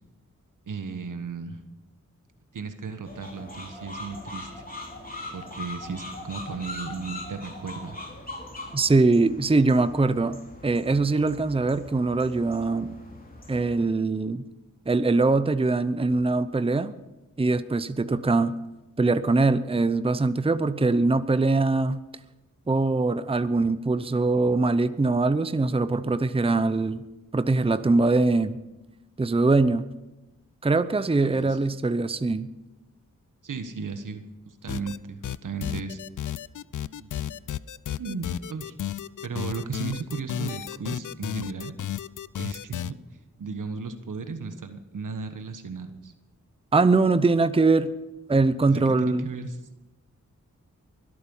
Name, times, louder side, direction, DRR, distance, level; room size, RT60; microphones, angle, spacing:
voice 1, 0.7-1.6 2.5-4.5 5.3-8.0 31.0-31.6 33.4-36.0 37.0-37.4 38.0-38.7 39.2-41.7 42.4-43.0 43.4-46.1 48.7-49.6, right 4 dB, 75° right, 8 dB, 1.4 m, -35 dB
sound 1, 3.0-13.8, left 2 dB, 30° left, 3.4 m, -41 dB
voice 2, 8.7-12.9 13.5-14.4 14.9-16.9 17.4-18.5 19.0-22.0 22.7-27.0 27.3-28.6 29.2-29.9 30.6-32.5 46.7-47.9 48.3-49.3, right 3 dB, 20° right, 13 dB, 0.7 m, -22 dB
sound 2, 34.7-35.0 35.2-42.9, left 10 dB, 70° left, 0.5 m, -33 dB
23.5 x 8.6 x 5.5 m, 1.0 s
cardioid pair, 55°, 31 cm